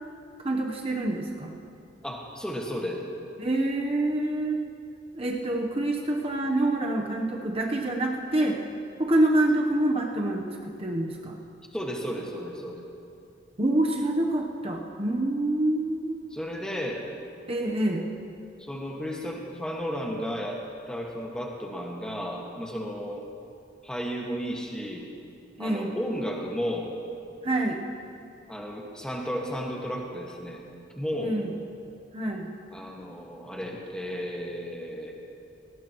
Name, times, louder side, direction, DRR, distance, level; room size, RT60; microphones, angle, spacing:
voice 1, 0.4-1.5 3.4-4.6 5.1-8.6 9.0-10.4 10.8-11.4 13.6-16.2 17.5-18.1 25.6-26.0 27.4-27.8 31.2-31.5 32.1-32.5, right 1 dB, 30° right, 1 dB, 0.9 m, -26 dB
voice 2, 2.0-3.0 11.7-12.8 16.3-17.0 18.6-20.6 20.9-23.2 23.8-25.0 25.6-26.9 28.5-30.6 31.0-31.4 32.7-35.1, equal, 5° left, -1 dB, 1.6 m, -33 dB
19.0 x 17.5 x 3.1 m, 2.5 s
head